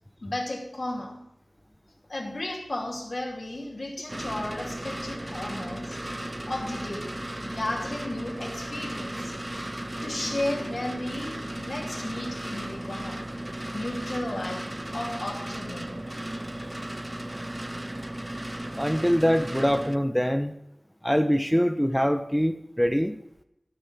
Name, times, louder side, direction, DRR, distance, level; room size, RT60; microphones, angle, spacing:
voice 1, 0.2-1.2 2.1-6.0 6.5-7.1 7.4-9.3 10.0-13.3 13.7-16.0, left 1 dB, 65° left, 2.6 m, -34 dB
sound 1, 4.1-20.0, right 1 dB, 25° right, 0.6 m, -35 dB
voice 2, 18.8-20.5 21.0-23.2, equal, 5° left, 0.8 m, -24 dB
12.5 x 5.4 x 8.5 m
wide cardioid pair, 50°, 0 cm